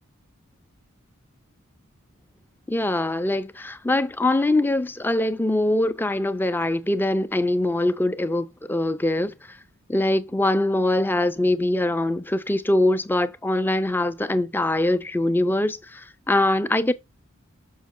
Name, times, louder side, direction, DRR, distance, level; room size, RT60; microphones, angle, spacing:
voice 1, 2.7-9.3 9.9-16.9, left 1 dB, 10° left, 0.4 m, -23 dB
6.3 x 5.3 x 3.7 m
head